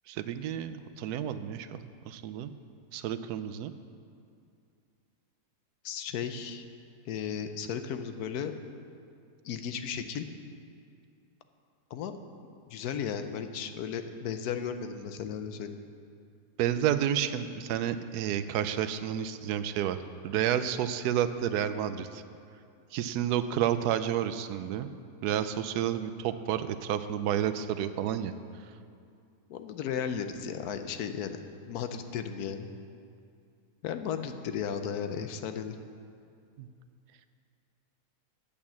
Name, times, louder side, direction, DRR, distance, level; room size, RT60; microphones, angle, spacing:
voice 1, 0.1-2.5 2.9-3.7 16.6-20.0 20.2-22.2 22.9-24.9 25.2-28.3 36.6-36.7, right 10 dB, 75° right, 11 dB, 1.1 m, -30 dB
voice 2, 5.8-6.6 7.1-8.5 9.4-10.3 11.9-12.2 12.7-15.8 29.5-31.4 31.7-32.7 33.8-35.8, left 7 dB, 75° left, 8 dB, 1.1 m, -35 dB
8.7 x 8.3 x 7.2 m, 2.4 s
omnidirectional pair, 1.7 m